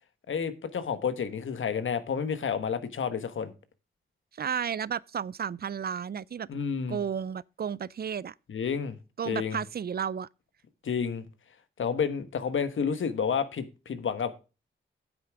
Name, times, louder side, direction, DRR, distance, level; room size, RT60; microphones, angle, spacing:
voice 1, 0.3-3.5 6.5-7.0 8.5-9.0 9.2-9.6 10.8-11.2 11.8-14.3, left 6 dB, 70° left, 1.3 m, -30 dB
voice 2, 4.4-6.5 6.9-8.3 9.2-10.3, right 7 dB, 50° right, 0.5 m, -32 dB
9.8 x 8.5 x 3.5 m
cardioid pair, 60°, 21 cm